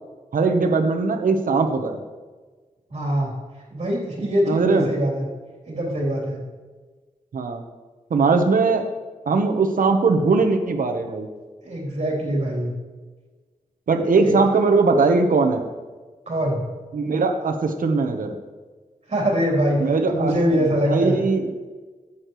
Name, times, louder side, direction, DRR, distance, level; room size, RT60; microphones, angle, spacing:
voice 1, 0.3-2.0 4.5-4.9 7.3-7.6 8.1-8.9 9.3-11.3 13.9-15.6 16.9-18.3 19.8-21.5, right 4 dB, 85° right, 4 dB, 1.0 m, -20 dB
voice 2, 2.9-3.3 3.7-5.2 5.6-6.4 11.6-12.7 14.2-14.3 16.3-16.6 19.1-21.2, equal, 55° right, -3 dB, 3.3 m, -23 dB
11.5 x 8.6 x 3.1 m, 1.3 s
wide cardioid pair, 130°, 14 cm